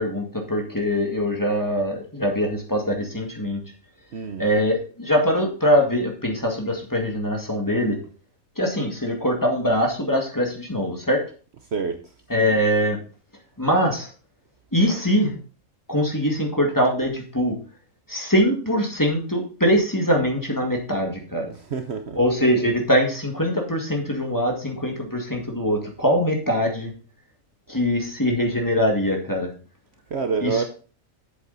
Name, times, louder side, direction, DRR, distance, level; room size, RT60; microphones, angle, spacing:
voice 1, 0.0-3.6 4.4-8.0 8.6-11.2 12.3-13.0 13.6-14.1 14.7-15.4 15.9-17.6 18.1-21.5 22.2-26.9 27.7-29.5 30.4-30.6, equal, 15° left, 1.9 m, -22 dB
voice 2, 4.1-4.5 11.7-12.1 21.5-22.2 30.1-30.6, right 5 dB, 60° right, 1.0 m, -27 dB
7.7 x 7.7 x 4.0 m
omnidirectional pair, 1.4 m